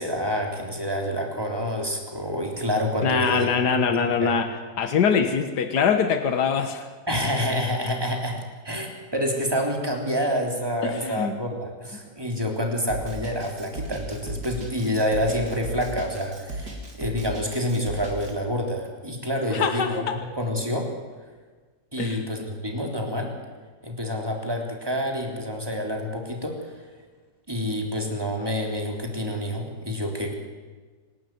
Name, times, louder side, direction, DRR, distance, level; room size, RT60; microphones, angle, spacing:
voice 1, 0.0-4.3 7.1-20.9 21.9-23.3 23.8-26.8 27.5-30.3, equal, 15° right, 1 dB, 3.6 m, -28 dB
voice 2, 3.0-4.5 4.8-6.9 10.8-11.3 19.5-20.2 22.0-22.2, left 6 dB, 80° left, 8 dB, 2.0 m, -23 dB
Drum kit, 12.9-18.3, right 2 dB, 85° right, 4.4 m, -36 dB
27.5 x 12.5 x 9.4 m, 1.4 s
omnidirectional pair, 1.8 m